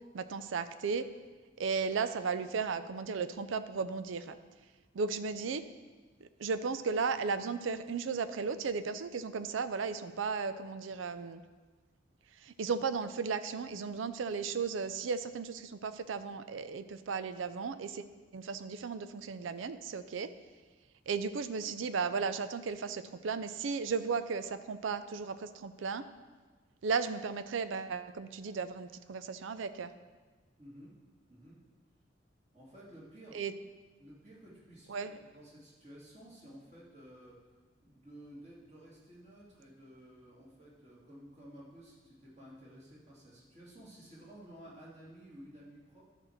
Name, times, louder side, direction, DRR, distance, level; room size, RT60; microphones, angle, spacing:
voice 1, 0.1-1.1 1.6-4.4 4.9-5.7 6.4-11.4 12.4-18.0 18.3-20.3 21.1-26.0 26.8-29.9 33.3-33.5 34.9-35.1, right 5 dB, 85° right, 12 dB, 0.5 m, -35 dB
voice 2, 30.6-30.9 31.3-31.6 32.5-33.5 34.0-35.1 35.3-37.4 37.8-46.0, equal, 35° right, -6 dB, 2.3 m, -53 dB
11.0 x 4.5 x 6.4 m, 1.4 s
head